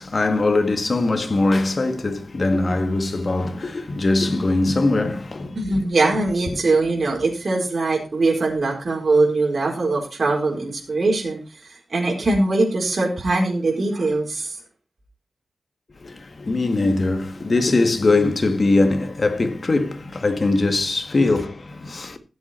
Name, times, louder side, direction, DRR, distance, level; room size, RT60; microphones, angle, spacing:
voice 1, 0.0-5.8 16.0-22.2, left 2 dB, 45° left, 1.9 m, -21 dB
voice 2, 5.6-11.4 11.6-14.6, right 3 dB, 55° right, 4.6 m, -21 dB
15.0 x 8.0 x 4.5 m
wide cardioid pair, 105°, 0 cm